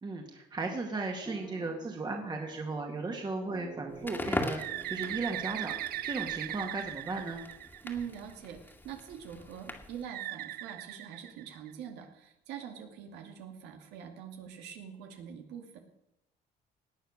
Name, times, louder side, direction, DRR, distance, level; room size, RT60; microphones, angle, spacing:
voice 1, 0.0-5.8 6.0-7.4, right 3 dB, 25° right, 2 dB, 2.1 m, -36 dB
sound 1, 1.3-7.3, right 2 dB, 10° right, 1.8 m, -50 dB
Crackle, 3.9-10.1, left 2 dB, 10° left, 2.2 m, -41 dB
Bird, 4.6-8.3 10.1-11.9, right 15 dB, 65° right, 0.5 m, -39 dB
voice 2, 7.8-15.8, right 8 dB, 90° right, 4 dB, 2.4 m, -44 dB
18.5 x 9.2 x 6.5 m, 0.84 s
cardioid pair, 110°, 17 cm